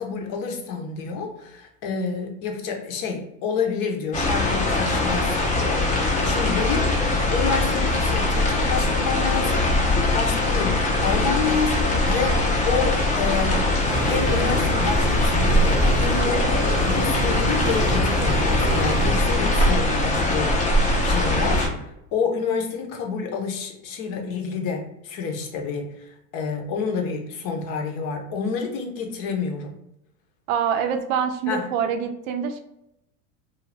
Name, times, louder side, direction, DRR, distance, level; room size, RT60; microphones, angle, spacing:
voice 1, 0.0-6.9 7.3-13.7 14.0-29.8 31.5-31.7, left 5 dB, 50° left, 3 dB, 0.8 m, -29 dB
sound 1, 4.1-21.7, left 2 dB, 20° left, 0.6 m, -21 dB
sound 2, 13.8-19.1, right 2 dB, 15° right, 0.7 m, -28 dB
voice 2, 30.5-32.6, right 7 dB, 60° right, 7 dB, 0.5 m, -25 dB
2.5 x 2.3 x 3.2 m, 0.82 s
supercardioid pair, 110°, 44 cm